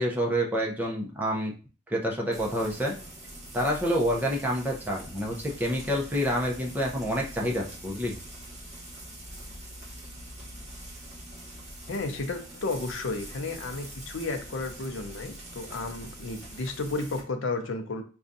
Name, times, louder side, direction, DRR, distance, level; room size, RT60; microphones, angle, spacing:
voice 1, 0.0-1.5 1.9-2.9 3.5-8.1, equal, 10° right, -2 dB, 0.6 m, -28 dB
Frying (food), 2.3-17.2, right 1 dB, 35° right, 1.1 m, -44 dB
voice 2, 11.9-18.0, left 3 dB, 75° left, 5 dB, 0.5 m, -33 dB
4.8 x 2.3 x 2.6 m, 0.38 s
head